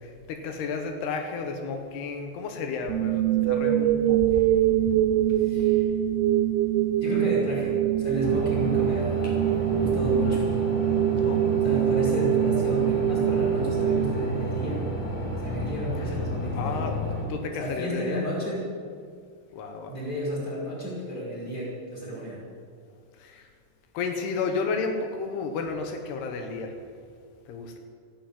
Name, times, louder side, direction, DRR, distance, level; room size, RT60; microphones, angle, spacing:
voice 1, 0.0-4.5 4.8-5.3 11.2-11.4 16.0-16.1 16.6-17.0 17.3-18.3 19.5-20.0 23.2-23.5 23.9-26.8 27.5-27.8, left 4 dB, 85° left, 5 dB, 3.3 m, -32 dB
sound 1, 2.9-14.9, right 12 dB, 85° right, 2.7 m, -24 dB
voice 2, 5.4-5.8 7.0-9.4 9.7-10.4 11.6-14.8 15.4-16.9 17.6-18.7 19.9-22.4, equal, 20° left, -5 dB, 5.7 m, -32 dB
sound 2, 8.2-17.3, equal, 55° left, 5.1 m, -31 dB
14.5 x 10.0 x 9.2 m, 2.1 s
omnidirectional pair, 4.5 m